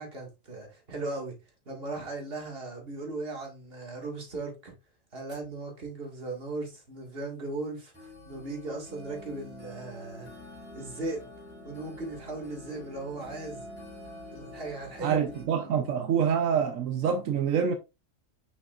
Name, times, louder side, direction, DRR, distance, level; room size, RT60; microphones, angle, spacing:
voice 1, 0.0-1.4 1.7-4.7 5.1-10.3 10.7-11.3 11.7-13.6 14.3-15.2 15.6-15.8, right 2 dB, 45° right, 2.3 m, -37 dB
sound 1, 4.0-4.1 5.2-5.5 6.0-6.1 7.2-7.3 7.9-15.4, left 1 dB, 5° right, 2.9 m, -46 dB
voice 2, 15.0-17.7, right 7 dB, 85° right, 1.2 m, -26 dB
6.6 x 5.8 x 2.5 m
omnidirectional pair, 1.3 m